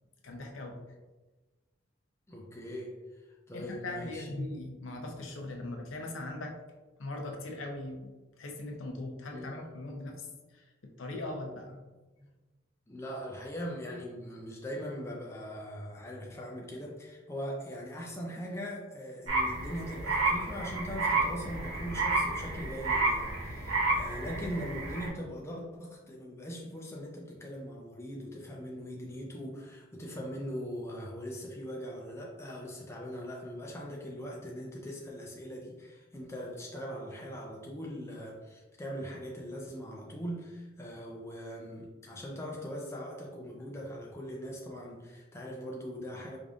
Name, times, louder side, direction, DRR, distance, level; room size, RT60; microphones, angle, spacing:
voice 1, 0.2-0.8 3.5-6.5 7.0-8.1 8.4-10.7 11.0-11.8, left 2 dB, 75° left, 2 dB, 0.6 m, -40 dB
voice 2, 2.3-4.3 9.3-9.6 12.2-12.3 12.9-46.4, equal, 15° left, -2 dB, 0.4 m, -41 dB
sound 1, 19.3-25.1, right 3 dB, 90° right, 1.1 m, -31 dB
4.9 x 2.6 x 2.4 m, 1.2 s
head